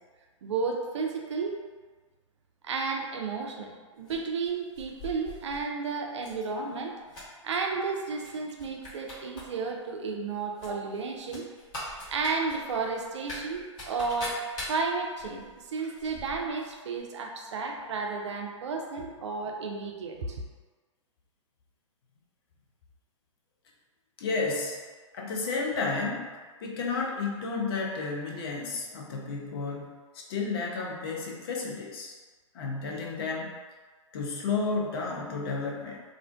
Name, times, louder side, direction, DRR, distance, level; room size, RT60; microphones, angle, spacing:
voice 1, 0.4-1.6 2.6-6.9 7.4-11.4 12.1-14.4 14.7-20.4, right 4 dB, 65° right, 2 dB, 0.4 m, -32 dB
sound 1, 4.0-5.6 6.2-6.4 6.8-7.6 8.2-8.3 8.6-9.4 9.7-9.8 10.6-16.7 17.0-17.1, left 1 dB, 30° left, 0.9 m, -42 dB
voice 2, 24.2-24.8 25.1-26.3 26.6-29.9 30.1-32.1 32.5-33.6 34.1-36.0, left 4 dB, 50° left, -2 dB, 0.5 m, -32 dB
2.4 x 2.1 x 2.4 m, 1.4 s
figure-of-eight pair, 110°, 16 cm